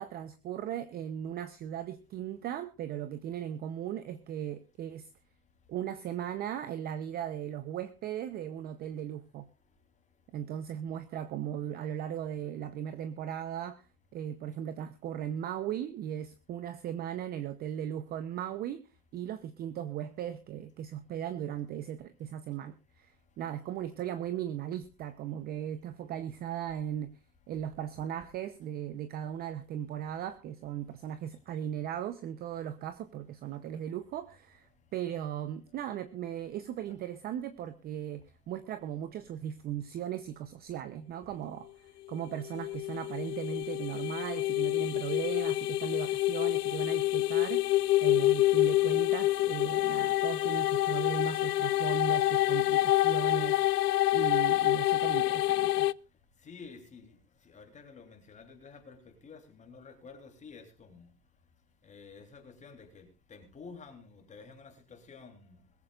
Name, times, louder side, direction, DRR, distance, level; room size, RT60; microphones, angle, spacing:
voice 1, 0.0-5.1 5.7-9.5 10.3-27.1 27.5-55.9, right 10 dB, 20° right, 0.7 m, -37 dB
sound 1, 42.4-55.9, left 16 dB, 85° left, 0.6 m, -27 dB
voice 2, 56.3-61.1 61.8-65.7, left 5 dB, 15° left, 3.3 m, -51 dB
21.5 x 14.5 x 2.4 m
hypercardioid pair, 140°, 46 cm